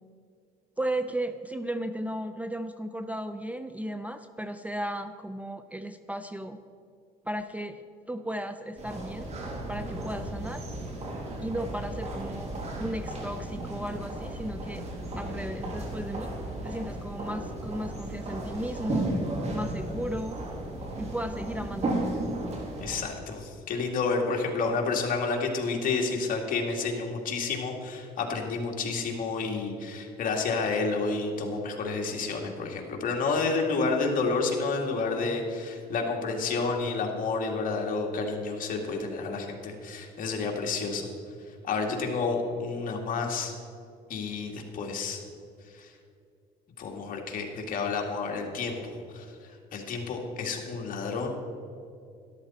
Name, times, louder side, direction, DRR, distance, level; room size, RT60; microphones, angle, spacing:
voice 1, 0.8-6.6 7.3-9.3 9.7-10.6 11.4-14.9 15.2-16.3 16.6-19.1 19.5-20.4 21.0-21.9, right 1 dB, 10° right, 10 dB, 0.4 m, -35 dB
sound 1, 8.8-23.0, right 1 dB, 40° right, 2.5 m, -34 dB
voice 2, 22.8-41.1 41.5-43.5 44.1-45.2 45.6-45.9 46.8-51.3, left 4 dB, 55° left, 1 dB, 2.1 m, -30 dB
13.0 x 12.0 x 4.2 m, 2.4 s
cardioid pair, 110°, 17 cm